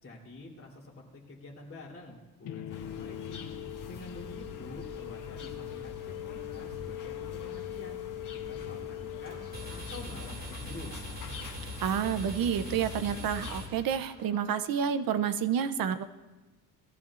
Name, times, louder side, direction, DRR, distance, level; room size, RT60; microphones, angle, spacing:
voice 1, 0.0-3.5 3.9-8.0 8.3-9.4 9.7-10.9, left 2 dB, 35° left, -3 dB, 3.3 m, -47 dB
sound 1, 2.4-10.4, left 12 dB, 80° left, 0.7 m, -41 dB
sound 2, 2.7-13.6, left 5 dB, 55° left, 1.6 m, -45 dB
sound 3, 9.3-14.4, left 1 dB, 25° right, 2.4 m, -42 dB
voice 2, 11.8-16.0, right 8 dB, 65° right, 11 dB, 0.7 m, -29 dB
21.0 x 14.5 x 2.5 m, 1.1 s
cardioid pair, 135°, 37 cm